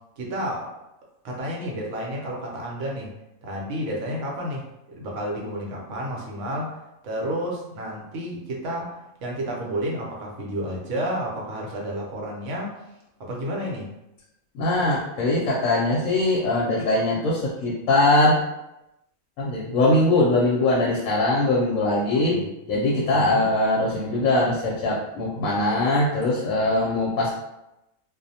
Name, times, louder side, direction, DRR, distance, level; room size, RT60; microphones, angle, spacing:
voice 1, 0.2-0.7 1.2-3.1 3.4-4.6 4.9-6.7 7.0-12.7 13.2-13.9 22.1-22.5 23.1-23.5, equal, 65° right, -2 dB, 0.9 m, -31 dB
voice 2, 14.5-18.4 19.4-22.4 22.7-27.3, left 2 dB, 75° left, -4 dB, 0.9 m, -21 dB
2.4 x 2.0 x 2.7 m, 0.90 s
omnidirectional pair, 1.5 m